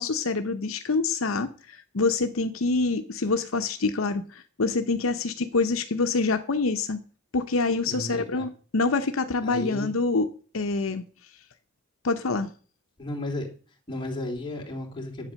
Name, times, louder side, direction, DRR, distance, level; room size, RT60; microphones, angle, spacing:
voice 1, 0.0-7.0 7.3-10.3 10.5-11.0 12.0-12.5, left 3 dB, 75° left, 8 dB, 0.8 m, -26 dB
voice 2, 7.8-8.5 9.4-9.9 13.0-13.5 13.9-15.3, left 1 dB, 25° left, -1 dB, 2.8 m, -34 dB
10.5 x 8.4 x 6.4 m, 0.41 s
head